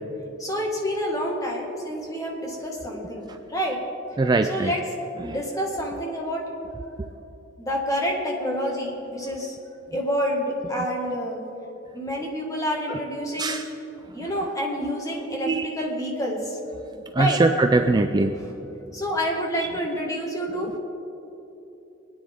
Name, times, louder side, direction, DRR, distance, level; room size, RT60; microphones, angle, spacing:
voice 1, 0.4-3.8 4.5-4.8 5.2-6.4 7.6-9.6 9.9-11.4 11.9-13.6 14.1-16.6 17.2-17.4 18.3-18.5 18.9-20.7, equal, 15° left, -1 dB, 1.8 m, -28 dB
voice 2, 4.2-4.7 5.2-5.3 12.9-13.0 13.4-13.7 15.4-15.7 17.2-18.3, right 2 dB, 20° right, 7 dB, 0.3 m, -21 dB
22.0 x 9.6 x 3.6 m, 3.0 s
head